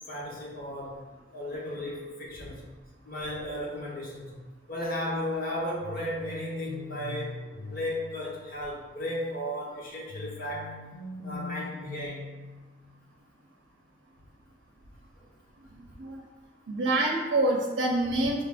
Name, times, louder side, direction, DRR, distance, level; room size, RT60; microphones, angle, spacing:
voice 1, 0.1-1.1 1.3-2.7 3.0-4.4 4.7-10.8 11.2-12.3, left 1 dB, 50° left, -5 dB, 1.1 m, -35 dB
sound 1, 5.8-8.9 10.1-13.0, left 3 dB, 70° left, 0.6 m, -42 dB
voice 2, 15.7-16.2 16.7-18.4, right 2 dB, 80° right, 0 dB, 0.5 m, -26 dB
5.1 x 2.5 x 3.4 m, 1.3 s
head